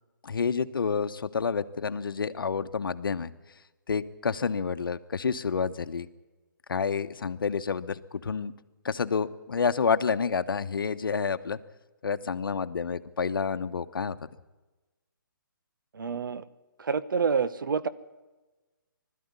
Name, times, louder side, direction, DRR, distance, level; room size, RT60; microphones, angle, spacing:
voice 1, 0.2-3.3 3.9-6.1 6.7-8.5 8.8-11.6 12.0-14.2, left 5 dB, 75° left, 11 dB, 1.1 m, -29 dB
voice 2, 15.9-16.4 16.8-17.9, right 5 dB, 70° right, 15 dB, 1.0 m, -27 dB
20.5 x 13.0 x 9.7 m, 1.2 s
hypercardioid pair, 165°, 11 cm